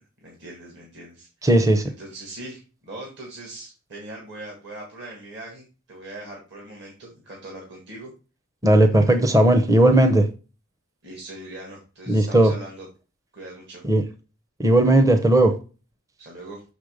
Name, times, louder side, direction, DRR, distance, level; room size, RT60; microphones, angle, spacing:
voice 1, 0.2-1.5 2.0-8.1 11.0-12.9 13.3-13.8 16.2-16.6, right 1 dB, 50° right, 1.9 m, -40 dB
voice 2, 1.4-1.8 8.6-10.2 12.1-12.5 13.8-14.0 14.6-15.5, right 1 dB, 15° right, 0.6 m, -16 dB
6.5 x 5.2 x 5.0 m
head